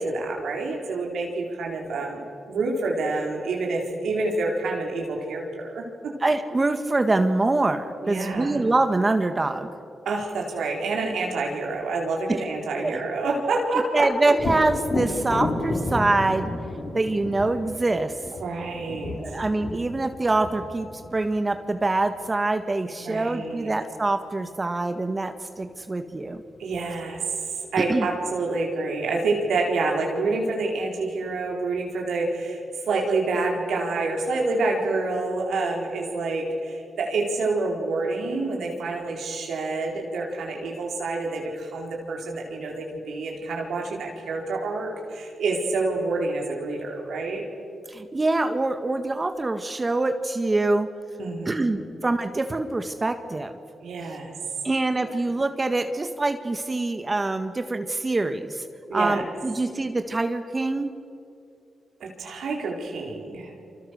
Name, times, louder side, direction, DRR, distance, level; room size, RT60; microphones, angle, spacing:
voice 1, 0.0-2.2 2.5-6.1 8.0-8.6 10.0-14.1 18.4-19.1 23.0-23.7 26.6-27.2 27.7-47.4 51.2-51.6 53.8-54.3 55.0-55.1 58.9-59.2 62.0-63.5, right 3 dB, 80° right, 0 dB, 4.3 m, -28 dB
voice 2, 6.2-9.7 12.3-12.4 12.8-13.0 13.9-16.5 16.9-18.1 19.2-26.4 27.9-28.1 47.9-50.9 51.4-53.6 54.6-58.6 58.9-60.9, right 2 dB, 30° right, 8 dB, 1.6 m, -25 dB
Thunder, 14.3-22.0 25.7-25.8 26.2-27.1, left 2 dB, 60° left, 5.4 m, -32 dB
29.0 x 25.0 x 6.6 m, 2.6 s
supercardioid pair, 50°, 0 cm